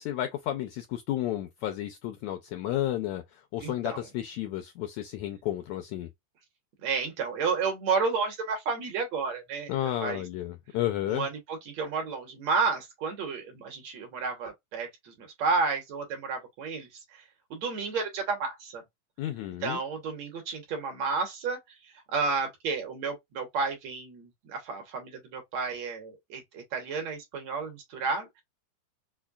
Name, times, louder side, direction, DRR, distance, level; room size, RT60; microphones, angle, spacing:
voice 1, 0.0-6.1 9.7-11.3 19.2-19.8, left 13 dB, 85° left, 1.6 m, -32 dB
voice 2, 3.6-4.0 6.8-9.7 10.0-10.2 11.1-17.2 17.5-18.8 19.6-28.4, right 4 dB, 65° right, 2.0 m, -31 dB
5.3 x 2.2 x 2.3 m
omnidirectional pair, 3.8 m